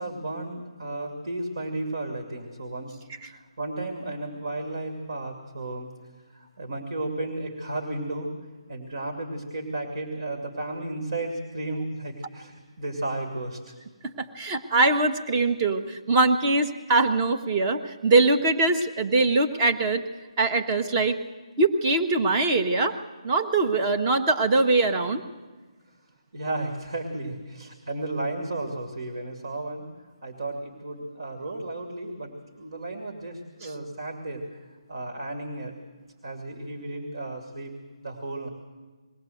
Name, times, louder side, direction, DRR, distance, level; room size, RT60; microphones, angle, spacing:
voice 1, 0.0-5.9 6.3-8.3 8.7-13.7 26.3-29.9 30.2-34.4 34.9-35.7 36.2-37.7 38.0-38.5, right 2 dB, 65° right, 2 dB, 2.7 m, -33 dB
voice 2, 14.0-20.0 20.4-21.2 21.6-22.9 23.2-25.2, right 3 dB, 25° right, 7 dB, 1.2 m, -22 dB
21.5 x 16.0 x 7.8 m, 1.3 s
figure-of-eight pair, 155°, 3 cm